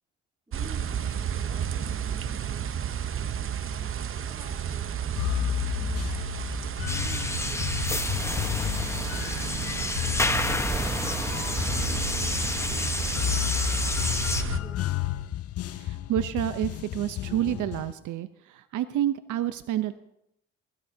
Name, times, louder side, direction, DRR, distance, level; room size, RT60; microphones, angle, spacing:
voice 1, 0.5-3.1 3.6-6.2 6.8-11.4 11.8-12.8 14.4-15.2, right 1 dB, 15° right, 1 dB, 6.5 m, -50 dB
sound 1, 0.5-14.6, right 8 dB, 45° right, 0.8 m, -32 dB
sound 2, 5.2-17.9, left 13 dB, 50° left, 0.5 m, -32 dB
sound 3, 6.9-14.4, left 2 dB, 10° left, 1.0 m, -30 dB
voice 2, 15.7-19.9, right 12 dB, 80° right, 12 dB, 0.7 m, -29 dB
22.0 x 17.0 x 2.7 m, 0.81 s
cardioid pair, 90°, 30 cm